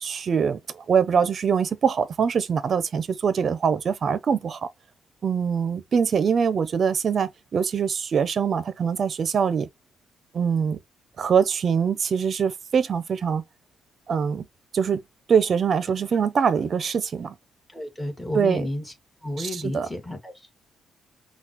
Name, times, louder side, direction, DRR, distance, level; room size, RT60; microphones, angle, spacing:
voice 1, 0.0-4.6 5.2-9.7 10.3-10.8 11.2-13.4 14.1-14.5 14.7-15.0 15.3-17.3 18.3-18.6 19.4-19.9, right 6 dB, 50° right, 0.6 m, -23 dB
voice 2, 17.7-18.9 19.2-20.5, left 1 dB, 10° left, 1.8 m, -32 dB
5.7 x 2.3 x 2.9 m
cardioid pair, 90°, 0 cm